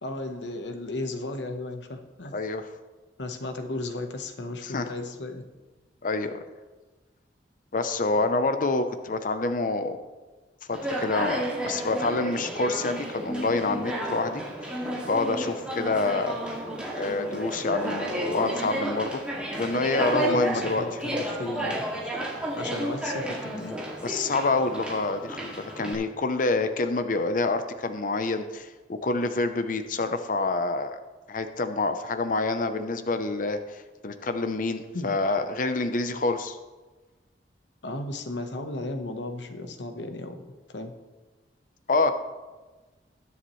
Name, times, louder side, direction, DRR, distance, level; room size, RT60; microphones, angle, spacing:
voice 1, 0.0-2.3 3.2-5.4 20.2-21.8 22.6-23.8 34.9-35.1 36.1-36.2 37.8-40.3 40.7-40.9, left 2 dB, 90° left, 6 dB, 1.1 m, -35 dB
voice 2, 2.3-2.7 4.6-4.9 6.0-6.4 7.7-10.0 10.7-16.4 17.0-19.2 19.5-20.8 24.0-31.0 31.3-36.6 41.9-42.1, left 3 dB, 50° left, 9 dB, 0.7 m, -27 dB
Conversation, 10.7-25.9, right 1 dB, 5° right, 2.2 m, -32 dB
20.5 x 7.2 x 3.2 m, 1.3 s
head